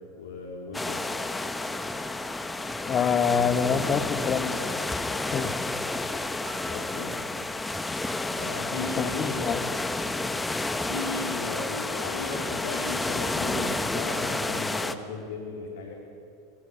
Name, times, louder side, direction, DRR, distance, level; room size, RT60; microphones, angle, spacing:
voice 1, 0.2-1.0 6.7-7.5 8.3-9.7 10.8-15.9, left 3 dB, 70° left, -4 dB, 4.5 m, -36 dB
sound 1, 0.7-15.0, left 2 dB, 10° left, 1.6 m, -30 dB
voice 2, 2.8-4.7 5.3-5.5 8.7-9.7, left 6 dB, 30° left, 8 dB, 2.5 m, -26 dB
Piano, 6.5-9.3, right 3 dB, 40° right, 7.2 m, -50 dB
26.0 x 22.5 x 9.8 m, 2.5 s
figure-of-eight pair, 75°, 0 cm